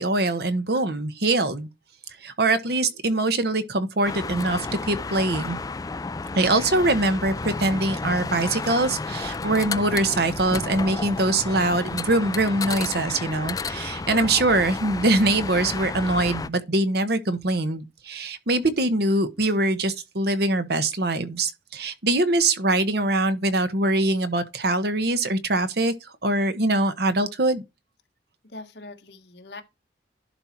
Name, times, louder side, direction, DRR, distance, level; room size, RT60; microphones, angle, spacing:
voice 1, 0.0-1.7 2.2-5.6 6.3-25.9 26.2-27.6, right 2 dB, 60° right, 1.1 m, -23 dB
sound 1, 4.0-16.5, left 3 dB, 20° left, 0.4 m, -32 dB
voice 2, 28.5-29.6, left 2 dB, 70° left, 1.4 m, -40 dB
11.5 x 4.3 x 4.5 m
head